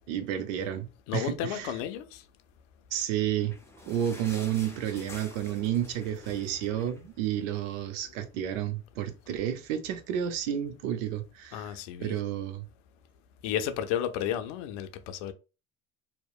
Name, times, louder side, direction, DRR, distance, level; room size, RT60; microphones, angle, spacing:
voice 1, 0.1-1.7 2.9-3.6 3.9-11.6 12.0-12.6, right 10 dB, 75° right, 0.6 m, -31 dB
voice 2, 1.1-2.2 11.5-12.2 13.4-15.3, left 10 dB, 75° left, 0.6 m, -32 dB
sound 1, 3.0-7.8 8.2-8.3 8.5-8.7 9.4-9.5, left 2 dB, 5° left, 0.6 m, -48 dB
2.8 x 2.0 x 2.3 m
hypercardioid pair, 85°, 37 cm